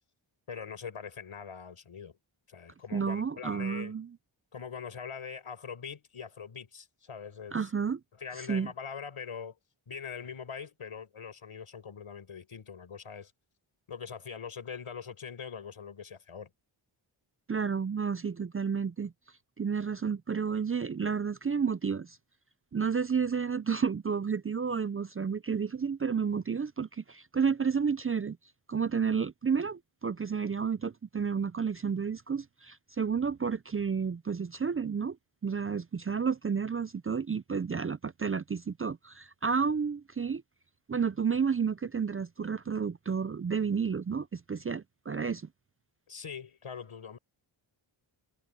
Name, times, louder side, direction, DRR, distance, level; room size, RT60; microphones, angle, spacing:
voice 1, 0.5-2.2 2.5-3.9 4.5-7.7 8.2-9.6 9.9-13.3 13.9-16.5 46.1-47.2, left 6 dB, 85° left, 6.1 m, -42 dB
voice 2, 2.9-4.1 7.5-8.0 8.5-8.7 17.5-19.1 19.6-22.2 22.7-28.4 28.7-35.2 35.4-40.4 40.9-45.5, right 6 dB, 30° right, 0.4 m, -31 dB
wide cardioid pair, 95°, 49 cm